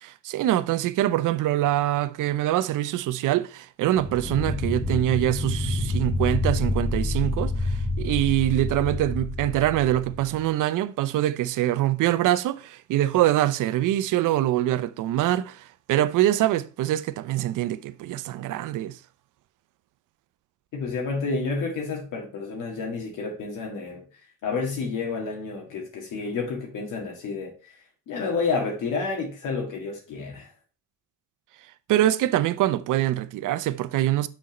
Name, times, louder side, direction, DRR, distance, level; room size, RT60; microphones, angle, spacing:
voice 1, 0.0-19.0 31.9-34.3, right 13 dB, 65° right, 0.6 m, -24 dB
sound 1, 4.0-10.4, left 2 dB, 5° left, 3.1 m, -28 dB
voice 2, 20.7-24.0 24.4-27.7 28.1-30.5, left 4 dB, 70° left, 2.0 m, -30 dB
6.1 x 4.4 x 5.2 m
cardioid pair, 95°, 33 cm